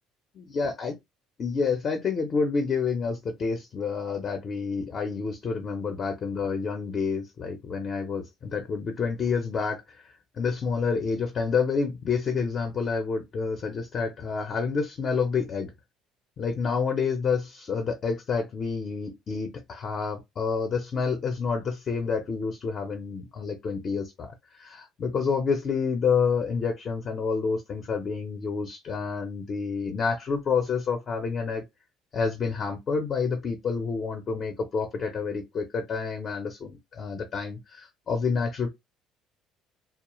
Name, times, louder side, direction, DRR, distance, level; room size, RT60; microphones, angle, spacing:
voice 1, 0.4-0.9 1.4-15.7 16.4-31.6 32.1-38.7, left 5 dB, 45° left, 0.6 m, -28 dB
2.3 x 2.0 x 3.0 m
supercardioid pair, 95°, 0 cm